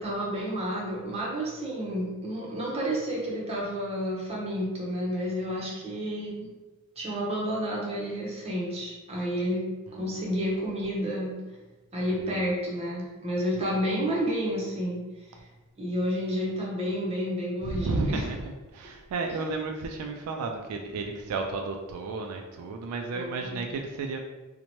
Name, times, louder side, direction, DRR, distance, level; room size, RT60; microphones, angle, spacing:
voice 1, 0.0-6.5 7.0-9.7 9.9-11.3 11.9-15.0 15.8-18.3 23.1-23.6, equal, 30° right, -4 dB, 0.7 m, -30 dB
voice 2, 17.6-18.4 18.7-24.2, right 3 dB, 80° right, 7 dB, 0.3 m, -32 dB
2.8 x 2.1 x 2.9 m, 1.1 s
head